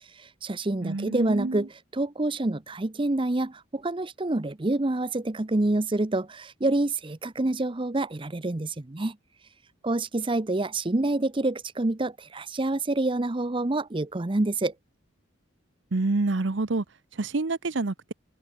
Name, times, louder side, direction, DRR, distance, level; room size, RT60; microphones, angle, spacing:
voice 1, 0.2-9.2 9.8-14.7, right 2 dB, 25° right, 0.8 m, -27 dB
voice 2, 0.8-1.6 15.9-16.8 17.2-18.1, right 3 dB, 70° right, 0.9 m, -27 dB
head